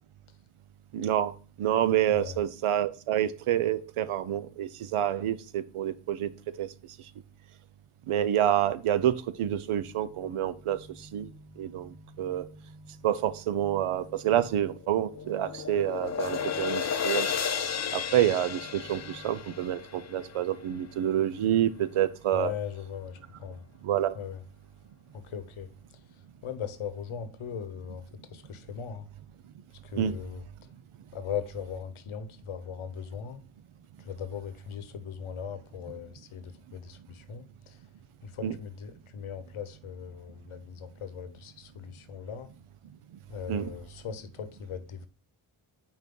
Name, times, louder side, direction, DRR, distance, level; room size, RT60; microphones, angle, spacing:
voice 1, 0.9-6.3 6.6-6.7 8.1-10.8 11.1-11.3 11.6-12.5 13.0-17.3 17.9-22.5 23.8-24.2 30.0-30.2 38.4-38.6 43.5-43.7, right 11 dB, 90° right, 0.6 m, -28 dB
voice 2, 2.0-2.4 22.3-23.6 24.1-24.4 25.1-29.1 29.8-30.7 31.1-33.4 34.0-37.8 38.2-42.5 43.3-45.1, left 7 dB, 80° left, 0.9 m, -39 dB
sound 1, 9.7-19.7, left 1 dB, 75° right, 3.2 m, -53 dB
sound 2, 14.6-20.9, left 7 dB, 35° left, 0.5 m, -33 dB
5.7 x 4.3 x 3.8 m
wide cardioid pair, 90°, 49 cm